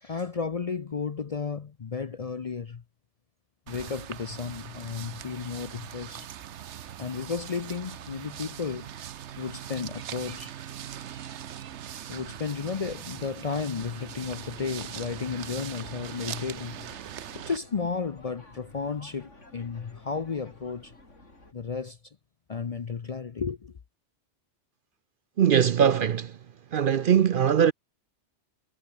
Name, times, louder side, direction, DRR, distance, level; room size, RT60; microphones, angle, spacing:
voice 1, 0.0-2.8 3.7-6.3 7.0-8.9 9.4-10.6 12.1-17.0 17.3-20.9 21.5-22.2 22.5-23.8, left 5 dB, 40° left, 0.6 m, -33 dB
sound 1, 3.7-17.6, right 10 dB, 70° right, 1.1 m, -41 dB
sound 2, 13.8-21.5, left 2 dB, 90° left, 5.5 m, -53 dB
voice 2, 25.4-26.4 26.7-27.7, right 8 dB, 55° right, 0.7 m, -21 dB
omnidirectional pair, 1.2 m